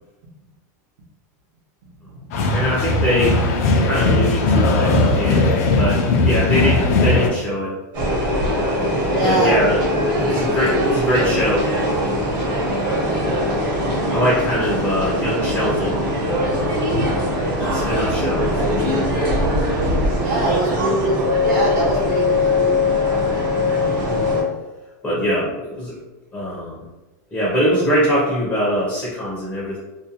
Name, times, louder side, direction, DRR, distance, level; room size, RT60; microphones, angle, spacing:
sound 1, 2.3-7.3, left 2 dB, 60° left, 0.5 m, -18 dB
voice 1, 2.5-3.4 3.8-7.7 9.2-9.8 10.2-12.3 14.1-16.0 16.5-17.1 17.6-19.3 23.9-24.1 25.0-26.0 26.3-26.9 27.3-29.8, equal, 10° left, -7 dB, 0.6 m, -23 dB
sound 2, 7.9-24.4, left 1 dB, 40° right, 1.0 m, -21 dB
voice 2, 9.1-9.5 20.1-22.7, right 2 dB, 65° right, -6 dB, 0.7 m, -23 dB
2.5 x 2.2 x 2.8 m, 1.1 s
supercardioid pair, 160°, 10 cm